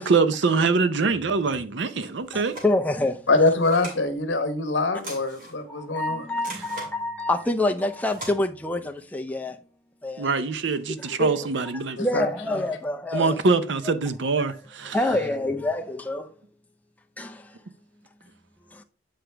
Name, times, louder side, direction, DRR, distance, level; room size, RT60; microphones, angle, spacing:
voice 1, 0.0-2.5 10.2-12.0 13.1-15.0, right 4 dB, 65° right, 0.6 m, -24 dB
sound 1, 2.0-2.7 3.3-4.0 4.9-5.6 6.4-6.9 7.8-8.3, right 1 dB, 45° right, 2.3 m, -40 dB
voice 2, 2.3-3.3 5.7-9.6 10.0-10.3 11.0-13.4 14.5-16.3 17.2-17.6 18.7-18.8, left 2 dB, 10° left, 0.5 m, -27 dB
voice 3, 3.3-6.2 12.0-12.3, left 2 dB, 70° left, 1.1 m, -23 dB
7.9 x 4.9 x 3.3 m
head